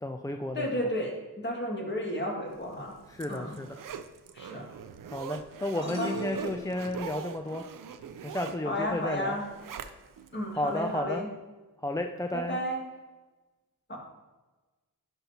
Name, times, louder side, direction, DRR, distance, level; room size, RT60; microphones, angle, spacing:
voice 1, 0.0-0.7 3.1-3.8 5.1-7.7 8.2-9.4 10.5-11.2 11.8-12.6, left 1 dB, 10° left, 5 dB, 0.3 m, -33 dB
voice 2, 0.5-1.1 1.4-2.9 3.3-3.5 4.3-4.7 5.8-6.1 8.7-9.4 10.3-11.3 12.3-12.8 13.9-14.0, equal, 30° left, -1 dB, 2.0 m, -32 dB
Zipper (clothing), 2.7-10.3 10.7-10.8, right 7 dB, 65° right, 0.5 m, -42 dB
sound 1, 5.8-7.4, equal, 15° right, 2.0 m, -38 dB
11.5 x 5.4 x 2.9 m, 1.2 s
wide cardioid pair, 85°, 36 cm